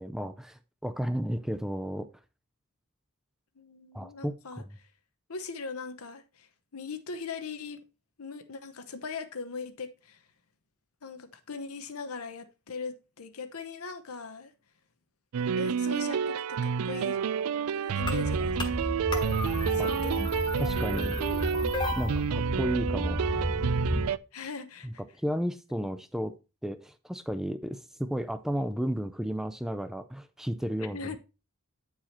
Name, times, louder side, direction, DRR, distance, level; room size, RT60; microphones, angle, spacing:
voice 1, 0.0-2.1 3.9-4.7 19.8-19.9 20.6-21.2 21.9-23.2 24.8-26.3 26.6-31.2, equal, ahead, 0.4 m, -33 dB
voice 2, 3.6-4.9 5.3-7.8 8.2-10.2 11.0-14.5 15.6-17.2 17.7-18.6 19.7-20.2 24.3-25.0 30.9-31.2, left 4 dB, 80° left, 0.9 m, -40 dB
sound 1, 15.3-24.2, right 6 dB, 80° right, 0.4 m, -30 dB
sound 2, 18.0-24.1, equal, 20° left, 1.2 m, -32 dB
8.9 x 4.8 x 4.2 m
head